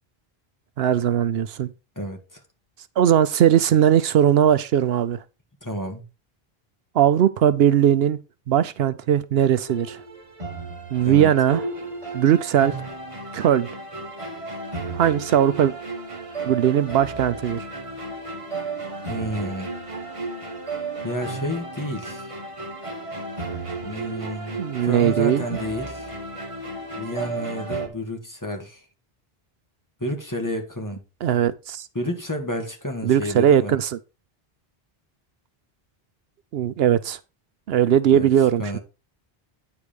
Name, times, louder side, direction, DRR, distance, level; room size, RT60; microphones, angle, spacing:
voice 1, 0.8-1.7 3.0-5.2 6.9-8.2 8.5-10.0 10.9-11.6 12.1-12.9 13.3-13.7 14.9-15.7 16.4-17.7 24.6-25.4 31.2-31.9 33.0-34.0 36.5-37.2 37.7-38.8, right 10 dB, 75° right, 0.8 m, -19 dB
voice 2, 2.0-2.4 5.6-6.1 11.0-11.3 19.1-19.7 21.0-22.3 23.8-26.1 27.0-28.8 30.0-31.0 32.0-33.7 38.1-38.3 38.6-38.8, equal, 20° left, 1.7 m, -30 dB
sound 1, 9.7-27.9, right 3 dB, 30° right, 1.7 m, -33 dB
9.5 x 4.8 x 5.1 m
omnidirectional pair, 1.0 m